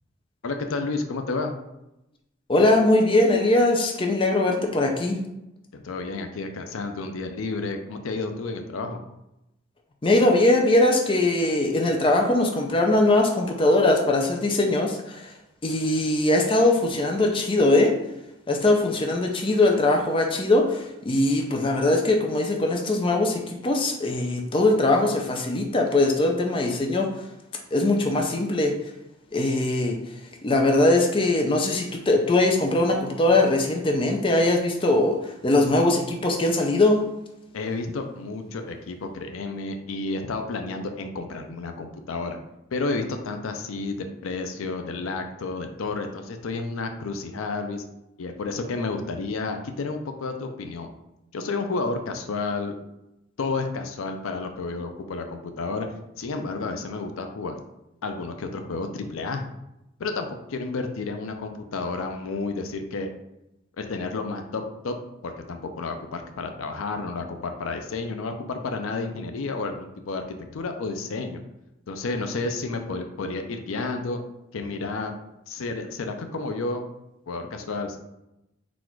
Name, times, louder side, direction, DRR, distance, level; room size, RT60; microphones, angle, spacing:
voice 1, 0.4-1.5 5.8-9.0 37.5-42.4 42.7-47.8 48.2-50.9 51.3-52.7 53.4-55.9 56.2-57.6 58.0-59.5 60.0-63.1 63.8-65.0 65.2-71.4 71.9-74.2 74.5-75.1 75.5-76.9 77.3-78.0, left 3 dB, 80° left, 6 dB, 0.5 m, -31 dB
voice 2, 2.5-5.2 10.0-15.3 15.6-18.0 18.5-27.2 27.7-28.8 29.3-37.1, left 2 dB, 25° left, 2 dB, 0.5 m, -21 dB
4.1 x 2.4 x 4.4 m, 0.90 s
head